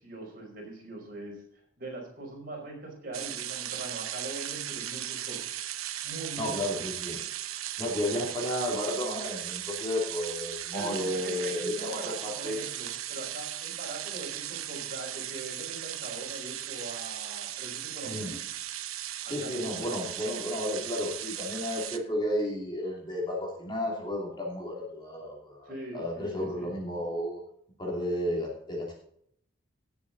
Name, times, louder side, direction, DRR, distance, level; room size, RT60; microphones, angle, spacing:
voice 1, 0.0-5.5 6.0-6.5 10.7-18.3 19.2-19.9 25.6-26.7, right 2 dB, 45° right, -1 dB, 5.3 m, -42 dB
sound 1, 3.1-22.0, right 12 dB, 90° right, 1.0 m, -37 dB
voice 2, 6.4-7.2 7.8-12.6 18.0-18.3 19.3-27.4 27.8-28.9, left 1 dB, 20° left, -1 dB, 2.8 m, -32 dB
18.5 x 7.2 x 4.0 m, 0.67 s
head